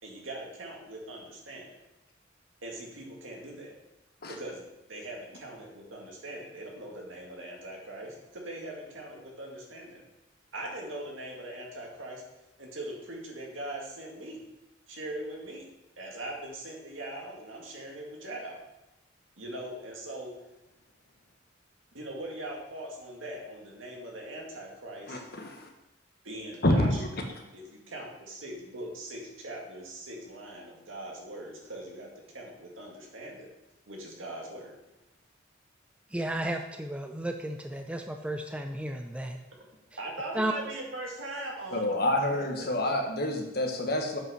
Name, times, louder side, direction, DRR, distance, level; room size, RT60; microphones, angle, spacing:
voice 1, 0.0-1.7 2.6-3.8 4.3-10.0 10.5-12.2 12.6-14.4 14.9-15.6 16.0-18.6 19.4-20.3 21.9-25.2 26.2-27.0 27.5-32.1 32.3-33.5 33.9-34.7 40.0-41.8 42.3-42.9, right 1 dB, 85° right, -1 dB, 2.1 m, -41 dB
voice 2, 25.1-25.7 26.6-27.1 41.7-44.2, left 1 dB, 55° left, 3 dB, 1.3 m, -28 dB
voice 3, 36.1-39.4 40.3-40.5, right 1 dB, 5° right, 5 dB, 0.4 m, -33 dB
7.6 x 5.6 x 5.6 m, 0.94 s
head